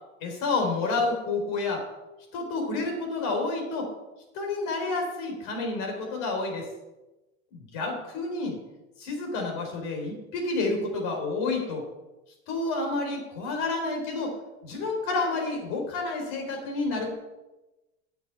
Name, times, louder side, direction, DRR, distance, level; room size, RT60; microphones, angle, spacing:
voice 1, 0.2-1.9 2.3-3.9 4.3-6.7 7.5-8.6 9.0-11.8 12.5-14.4 14.6-17.1, left 3 dB, 70° left, 2 dB, 4.2 m, -29 dB
9.1 x 7.1 x 8.5 m, 1.0 s
supercardioid pair, 85°, 34 cm